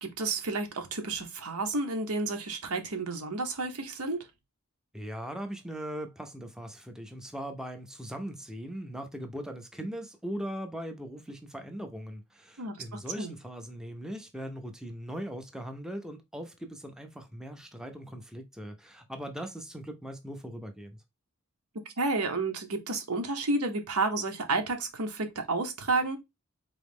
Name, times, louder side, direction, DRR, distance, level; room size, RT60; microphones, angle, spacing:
voice 1, 0.0-4.2 12.6-13.3 22.0-26.2, right 3 dB, 85° right, 0.9 m, -31 dB
voice 2, 4.9-21.0, equal, 5° right, 0.5 m, -40 dB
3.9 x 3.1 x 3.5 m
head